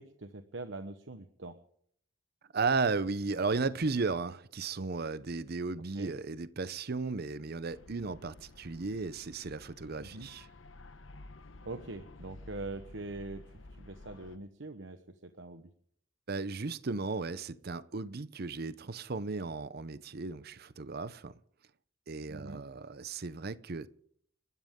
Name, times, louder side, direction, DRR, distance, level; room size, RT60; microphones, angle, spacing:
voice 1, 0.0-1.6 5.9-6.1 10.0-10.3 11.6-15.7 22.3-22.6, right 2 dB, 75° right, 1.1 m, -43 dB
voice 2, 2.5-10.4 16.3-21.3 22.1-23.9, right 4 dB, 55° right, 0.7 m, -35 dB
sound 1, 7.7-14.4, left 2 dB, 85° left, 1.0 m, -52 dB
30.0 x 13.0 x 3.7 m
head